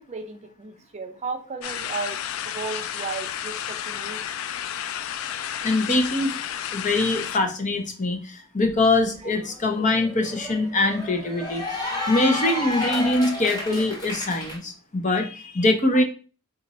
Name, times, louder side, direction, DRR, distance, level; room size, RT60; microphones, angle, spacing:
voice 1, 0.0-2.2 2.4-4.2 9.2-9.3 12.4-12.6, right 4 dB, 35° right, 5 dB, 0.6 m, -35 dB
sound 1, 1.6-7.4, left 9 dB, 70° left, 0.3 m, -32 dB
voice 2, 5.6-6.3 6.7-16.0, left 2 dB, 40° left, 5 dB, 0.7 m, -23 dB
Cheering / Applause, 8.7-8.8 9.1-14.6, left 2 dB, 20° left, 1.4 m, -32 dB
3.9 x 2.5 x 4.1 m, 0.36 s
head